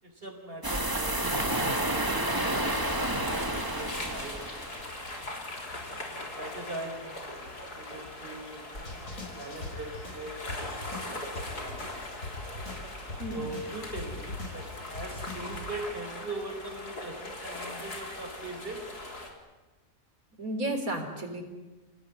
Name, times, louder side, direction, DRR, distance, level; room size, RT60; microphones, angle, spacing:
voice 1, 0.0-3.1 3.8-5.0 6.1-7.2 7.7-8.7 9.4-11.9 13.3-18.9, right 2 dB, 35° right, 3 dB, 5.2 m, -41 dB
sound 1, 0.6-5.1, right 1 dB, 15° right, 1.9 m, -30 dB
sound 2, 2.1-19.3, left 2 dB, 90° left, 4.5 m, -41 dB
sound 3, 8.7-15.7, left 2 dB, 55° left, 5.3 m, -42 dB
voice 2, 20.4-21.4, right 1 dB, 65° right, 5 dB, 4.2 m, -32 dB
28.5 x 17.5 x 9.8 m, 1.2 s
omnidirectional pair, 1.6 m